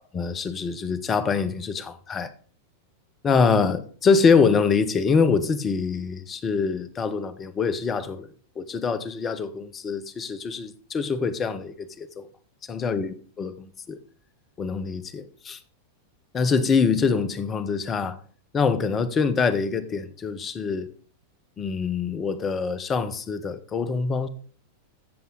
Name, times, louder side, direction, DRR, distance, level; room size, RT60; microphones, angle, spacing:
voice 1, 0.1-2.3 3.2-8.3 8.6-12.3 12.7-14.0 14.6-15.6 16.3-18.2 18.5-20.9 21.6-24.3, left 5 dB, 25° left, 0.9 m, -24 dB
14.5 x 7.1 x 3.9 m
figure-of-eight pair, 90°, 0 cm